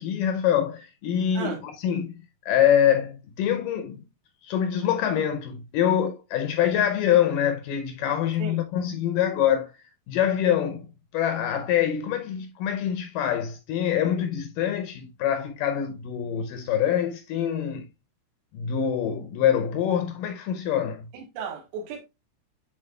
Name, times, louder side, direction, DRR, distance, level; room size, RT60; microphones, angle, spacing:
voice 1, 0.0-2.1 2.5-4.0 4.4-9.7 10.1-17.9 18.5-21.1, left 9 dB, 85° left, 1.9 m, -25 dB
voice 2, 21.1-22.0, right 6 dB, 90° right, 3.3 m, -34 dB
10.0 x 4.2 x 2.2 m
omnidirectional pair, 4.7 m